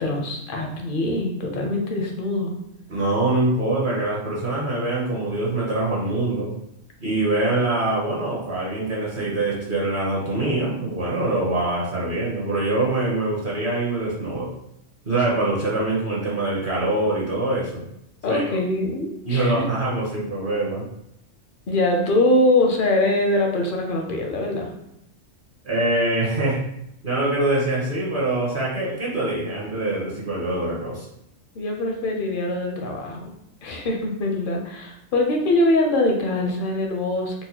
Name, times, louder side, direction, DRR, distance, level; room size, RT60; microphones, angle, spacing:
voice 1, 0.0-2.5 18.2-19.5 21.7-24.7 31.6-33.2 33.6-37.5, left 1 dB, 55° left, 2 dB, 0.6 m, -23 dB
voice 2, 2.9-6.5 7.0-14.5 15.0-17.8 18.3-18.4 19.3-20.8 25.6-26.6 27.0-31.0, right 2 dB, 50° right, -4 dB, 0.8 m, -24 dB
4.1 x 2.1 x 2.7 m, 0.80 s
omnidirectional pair, 1.3 m